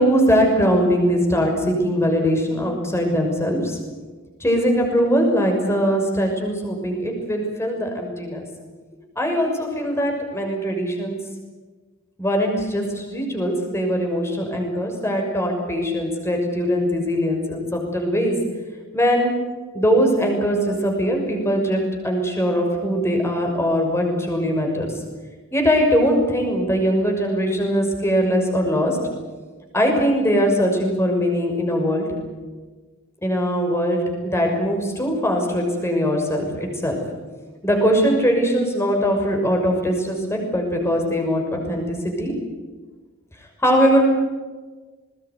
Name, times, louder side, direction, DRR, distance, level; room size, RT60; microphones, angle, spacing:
voice 1, 0.0-3.8 4.4-8.5 9.2-11.2 12.2-18.4 18.9-19.3 19.7-24.9 25.5-29.0 29.7-32.1 33.2-37.0 37.6-42.3 43.6-44.0, equal, 15° left, 2 dB, 6.3 m, -21 dB
21.0 x 20.5 x 9.7 m, 1.3 s
head